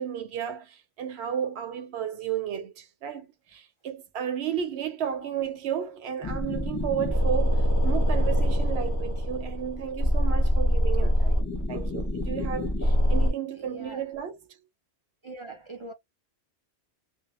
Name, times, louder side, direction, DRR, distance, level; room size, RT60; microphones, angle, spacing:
voice 1, 0.0-11.4 11.7-14.4, right 9 dB, 80° right, 0.9 m, -33 dB
sound 1, 6.2-13.3, equal, 20° left, 0.7 m, -24 dB
voice 2, 13.2-14.0 15.2-15.9, right 2 dB, 55° right, 0.3 m, -43 dB
2.2 x 2.0 x 2.9 m
omnidirectional pair, 1.1 m